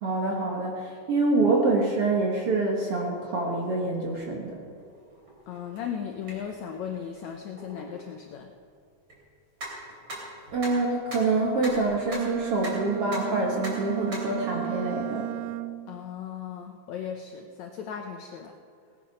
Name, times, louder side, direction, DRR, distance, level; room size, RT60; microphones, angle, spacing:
voice 1, 0.0-4.6 10.5-15.3, right 3 dB, 60° right, -1 dB, 1.6 m, -26 dB
sound 1, 3.7-13.3 13.6-14.3, right 1 dB, 35° right, 3.6 m, -43 dB
voice 2, 5.5-8.5 15.9-18.5, left 8 dB, 80° left, 3 dB, 1.6 m, -36 dB
Bowed string instrument, 11.9-16.0, right 18 dB, 80° right, 2.0 m, -35 dB
18.0 x 9.8 x 5.6 m, 2.2 s
omnidirectional pair, 4.2 m